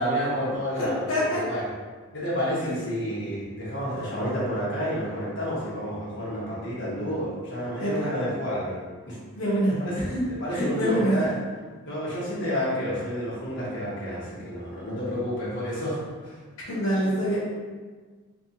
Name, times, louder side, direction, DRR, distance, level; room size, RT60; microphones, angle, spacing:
voice 1, 0.0-1.6 2.1-8.8 9.1-9.2 9.8-9.9 10.4-11.3 11.9-16.4, equal, 60° left, -7 dB, 1.2 m, -30 dB
voice 2, 0.7-1.4 2.6-2.7 3.9-4.0 7.8-8.1 9.3-10.2 10.5-11.2 16.7-17.4, equal, 85° left, -6 dB, 1.0 m, -26 dB
3.4 x 3.3 x 2.8 m, 1.4 s
head